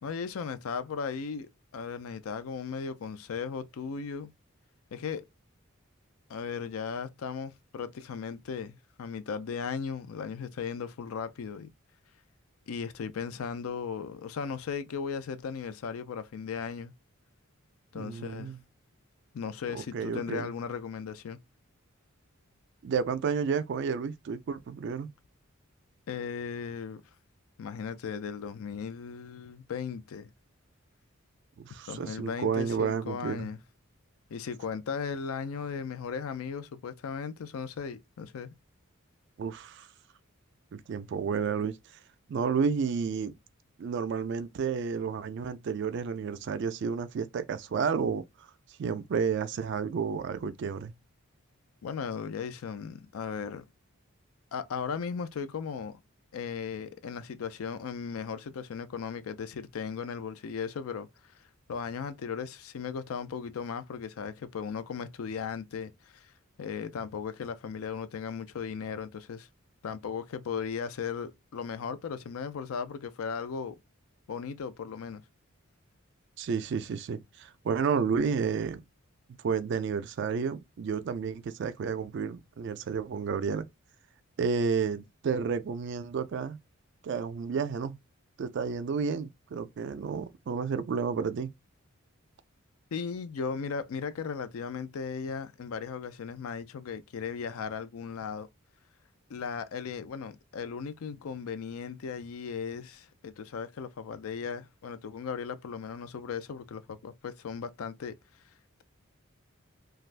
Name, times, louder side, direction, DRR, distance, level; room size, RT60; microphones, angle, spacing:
voice 1, 0.0-4.3 4.9-5.2 6.3-11.7 12.7-16.9 17.9-18.5 19.3-21.4 26.1-27.0 27.6-30.3 31.9-33.6 34.3-38.5 51.8-53.6 54.5-56.0 56.3-61.1 61.7-66.3 66.6-69.5 69.8-73.7 74.3-75.2 92.9-98.5 99.3-108.1, left 6 dB, 80° left, 0.4 m, -37 dB
voice 2, 17.9-18.6 19.7-20.5 22.8-25.1 31.6-33.5 39.4-39.9 40.7-41.8 42.3-43.3 43.8-48.5 48.8-50.9 76.4-78.8 79.4-83.7 84.4-86.6 87.0-88.0 88.4-91.5, right 6 dB, 55° right, 0.3 m, -31 dB
2.5 x 2.3 x 3.2 m
head